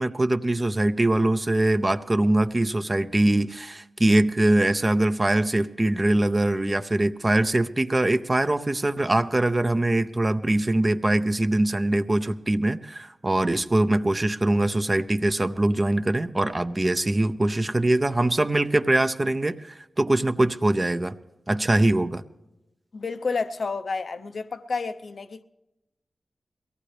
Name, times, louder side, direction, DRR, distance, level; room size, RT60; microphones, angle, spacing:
voice 1, 0.0-21.1 21.5-22.2, right 1 dB, 25° right, 0.6 m, -23 dB
voice 2, 22.9-25.4, left 4 dB, 60° left, 0.7 m, -30 dB
22.5 x 17.5 x 3.3 m
wide cardioid pair, 105°, 0 cm